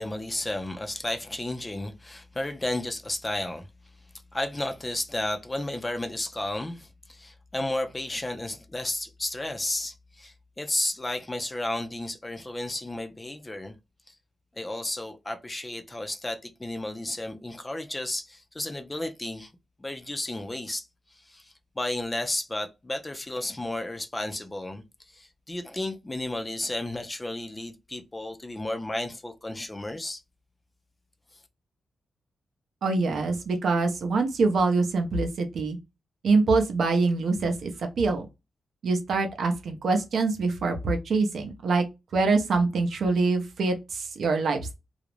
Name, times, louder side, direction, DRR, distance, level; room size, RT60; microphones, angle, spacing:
voice 1, 0.0-3.7 4.3-13.7 14.1-14.2 14.5-19.5 19.8-30.2, left 1 dB, 15° left, 0.4 m, -33 dB
voice 2, 32.8-35.8 36.2-37.7 38.0-38.3 38.8-41.8 42.1-44.7, right 3 dB, 65° right, 0.6 m, -24 dB
2.4 x 2.0 x 2.9 m
wide cardioid pair, 140°, 0 cm